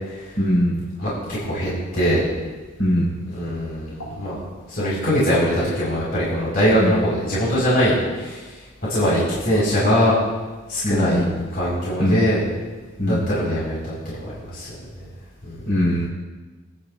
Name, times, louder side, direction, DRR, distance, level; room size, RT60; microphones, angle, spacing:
voice 1, 0.4-0.9 2.8-3.2 6.8-6.9 10.8-11.5 12.0-12.2 13.0-13.3 15.6-16.1, equal, 90° left, -4 dB, 4.6 m, -21 dB
voice 2, 1.0-2.2 3.4-4.4 4.7-8.4 8.8-10.1 10.7-11.2 11.5-12.4 13.0-13.9 14.5-14.7 15.0-15.1 15.4-15.6, equal, 50° left, -7 dB, 5.3 m, -21 dB
26.0 x 10.5 x 2.7 m, 1.3 s
head